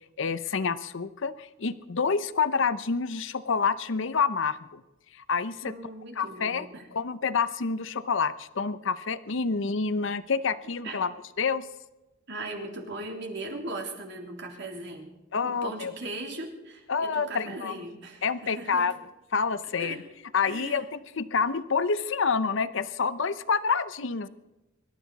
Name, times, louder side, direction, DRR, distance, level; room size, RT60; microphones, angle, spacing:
voice 1, 0.2-4.8 5.3-5.7 6.2-6.7 6.9-11.1 11.4-11.7 15.3-15.9 16.9-17.8 18.2-18.9 19.3-20.0 20.3-24.3, left 5 dB, 70° left, 14 dB, 0.7 m, -28 dB
voice 2, 5.6-6.8 10.8-11.0 12.3-15.1 15.4-18.9 19.8-20.0 20.4-20.8, right 2 dB, 60° right, 2 dB, 3.2 m, -38 dB
24.5 x 12.5 x 4.1 m, 1.0 s
head